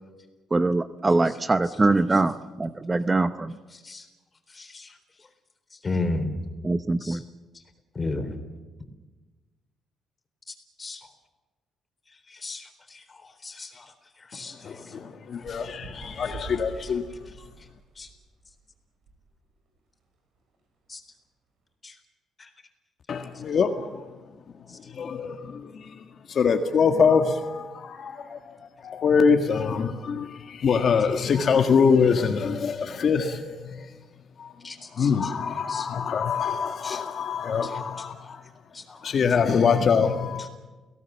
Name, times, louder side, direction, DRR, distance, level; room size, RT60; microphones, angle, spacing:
voice 1, 0.5-3.5 6.6-7.2, right 2 dB, 20° right, 0.8 m, -23 dB
voice 2, 4.5-4.9 5.8-6.3 7.0-7.2 8.0-8.3 10.8-11.0 12.3-13.0 13.4-13.9 14.3-14.6 16.0-16.1 16.8-16.9 18.0-18.1 20.9-21.0 21.8-21.9 22.4-22.5 34.6-35.3 35.7-35.9 36.8-37.0 37.6-38.4 38.7-39.0, left 2 dB, 25° left, 3.9 m, -34 dB
voice 3, 14.6-17.0 23.1-24.0 25.0-25.8 26.3-28.4 28.8-33.9 34.4-34.5 35.0-38.4 39.0-40.5, left 6 dB, 50° left, 1.6 m, -24 dB
Bird, 15.4-18.6 19.1-19.2 19.5-19.8 20.5-20.6, right 3 dB, 70° right, 7.6 m, -44 dB
29.5 x 17.5 x 7.2 m
cardioid pair, 100°, 0 cm